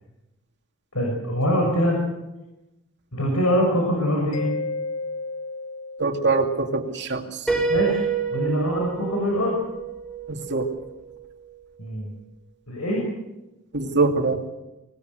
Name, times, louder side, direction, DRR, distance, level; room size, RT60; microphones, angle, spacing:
voice 1, 0.9-2.0 3.1-4.5 7.7-8.0 8.3-9.6 11.8-12.1 12.7-13.0, equal, 80° left, -1 dB, 6.7 m, -23 dB
Mallet percussion, 4.3-6.9, left 3 dB, 60° left, 1.8 m, -33 dB
voice 2, 6.0-7.4 10.3-10.7 13.7-14.4, right 3 dB, 50° right, 4 dB, 2.5 m, -23 dB
Piano, 7.5-11.2, right 6 dB, 5° left, 7.0 m, -27 dB
25.5 x 19.5 x 8.0 m, 0.98 s
head